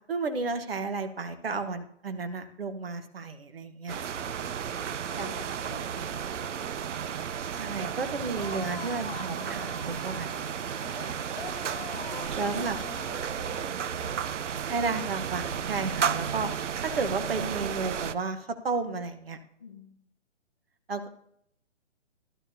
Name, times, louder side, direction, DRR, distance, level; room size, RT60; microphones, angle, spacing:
voice 1, 0.1-4.0 5.2-5.3 6.0-6.1 7.6-11.2 12.4-12.8 14.7-19.4 20.9-21.1, right 4 dB, 50° right, 8 dB, 1.2 m, -33 dB
sound 1, 3.9-18.1, right 8 dB, 75° right, 0.7 m, -33 dB
voice 2, 4.6-6.7 11.1-11.2 11.9-12.3 12.5-14.2 19.6-20.0, left 4 dB, 15° left, -6 dB, 0.7 m, -48 dB
sound 2, 8.3-13.2, left 7 dB, 50° left, 0.5 m, -45 dB
14.5 x 12.0 x 2.8 m, 0.71 s
hypercardioid pair, 175°, 36 cm